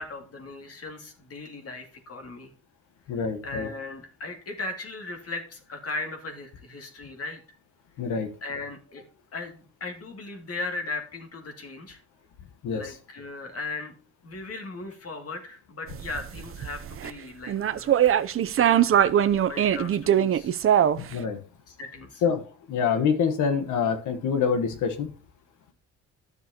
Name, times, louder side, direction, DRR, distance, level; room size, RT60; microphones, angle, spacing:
voice 1, 0.0-2.5 3.1-7.4 8.4-9.0 9.3-12.0 12.7-13.9 14.2-18.0 18.5-20.6 21.7-22.3, left 3 dB, 50° left, 4 dB, 2.4 m, -38 dB
voice 2, 3.1-3.7 8.0-8.3 12.6-12.8 21.1-21.4 22.2-25.1, left 6 dB, 80° left, 8 dB, 1.3 m, -26 dB
sound 1, 15.9-17.1 17.5-21.1, right 10 dB, 45° right, 0.6 m, -22 dB
11.0 x 6.7 x 2.9 m, 0.38 s
cardioid pair, 90°, 30 cm